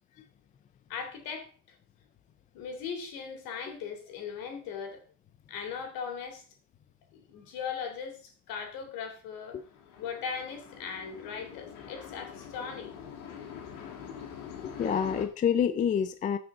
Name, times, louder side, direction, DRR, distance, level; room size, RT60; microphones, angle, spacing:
voice 1, 0.9-1.8 2.5-5.0 5.5-6.4 7.1-9.6 10.0-12.9, left 6 dB, 50° left, 4 dB, 3.4 m, -39 dB
sound 1, 9.6-15.3, left 8 dB, 65° left, 3.2 m, -44 dB
voice 2, 14.6-16.4, left 8 dB, 20° left, 10 dB, 0.4 m, -27 dB
15.0 x 6.2 x 3.8 m, 0.39 s
supercardioid pair, 125°, 44 cm